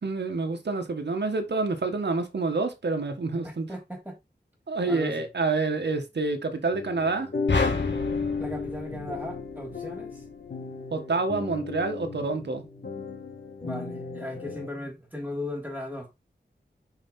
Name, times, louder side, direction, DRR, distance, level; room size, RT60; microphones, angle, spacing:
voice 1, 0.0-3.7 4.7-7.3 10.9-12.6, right 3 dB, 70° right, 1.4 m, -28 dB
voice 2, 3.4-4.1 4.8-5.3 8.4-10.2 13.6-16.1, left 1 dB, 10° right, 3.3 m, -37 dB
sound 1, 6.7-14.7, left 4 dB, 65° left, 1.8 m, -35 dB
sound 2, 7.5-9.9, left 4 dB, 85° left, 1.6 m, -29 dB
5.7 x 4.7 x 4.2 m
wide cardioid pair, 65°, 18 cm